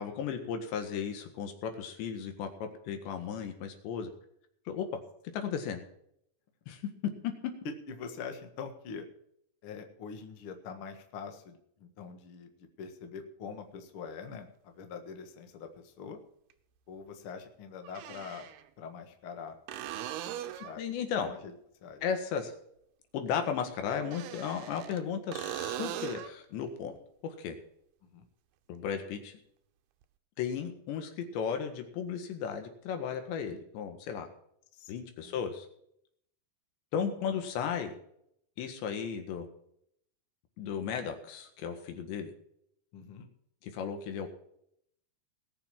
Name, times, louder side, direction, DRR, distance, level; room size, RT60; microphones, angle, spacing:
voice 1, 0.0-4.1 4.7-5.0 5.3-5.8 6.7-6.8 7.2-7.5 20.8-21.3 22.0-22.5 23.1-27.0 27.2-27.6 28.7-29.4 30.4-34.3 34.9-35.7 36.9-37.9 38.6-39.5 40.6-42.3 43.7-44.4, left 7 dB, 90° left, 6 dB, 4.0 m, -35 dB
voice 2, 7.9-9.1 9.6-16.2 16.9-18.5 18.8-19.6 20.4-20.8 21.2-21.5 21.8-22.0 28.0-28.2 34.7-34.9 35.2-35.4 37.3-37.4 42.9-43.3, left 6 dB, 60° left, 5 dB, 1.4 m, -44 dB
sound 1, 14.3-14.4 16.5-16.6 17.8-18.6 19.7-20.8 24.0-25.0 25.3-26.4 30.0-30.1, right 11 dB, 80° right, 2.7 m, -39 dB
19.5 x 7.0 x 5.8 m, 0.72 s
omnidirectional pair, 4.9 m